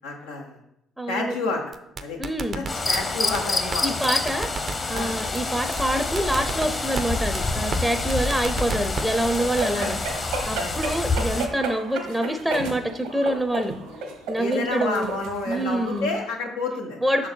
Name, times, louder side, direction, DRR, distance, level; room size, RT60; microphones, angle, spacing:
voice 1, 0.0-0.6 1.1-1.6 2.0-2.2 2.5-4.1 4.9-5.2 9.5-9.9 10.5-10.8 14.4-17.3, left 3 dB, 90° left, -1 dB, 1.2 m, -30 dB
voice 2, 1.0-1.3 2.2-2.6 3.8-4.5 4.9-13.7 14.3-15.1 15.5-16.1 17.0-17.3, right 1 dB, 5° right, 7 dB, 0.6 m, -26 dB
sound 1, 1.7-3.0 3.3-3.4 3.7-3.8 4.0-5.0 5.3-5.4 5.7-5.8 6.2-7.0 7.3-7.4 7.7-7.8 8.1-9.0 9.3-9.7, right 4 dB, 50° right, 0.6 m, -31 dB
sound 2, 2.7-11.5, left 3 dB, 35° left, 1.0 m, -27 dB
sound 3, 9.4-16.0, right 2 dB, 80° right, 1.3 m, -32 dB
6.0 x 4.5 x 4.5 m, 0.79 s
hypercardioid pair, 55°, 0 cm